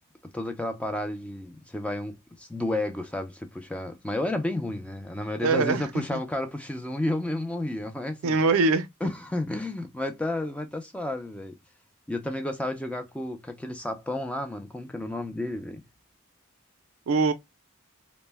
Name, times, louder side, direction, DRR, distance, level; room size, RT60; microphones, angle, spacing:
voice 1, 0.2-8.4 9.0-11.5 12.1-15.8, left 1 dB, 5° left, 0.3 m, -31 dB
voice 2, 5.4-6.2 8.2-8.9 17.1-17.3, right 4 dB, 70° right, 0.4 m, -23 dB
2.1 x 2.0 x 3.2 m
head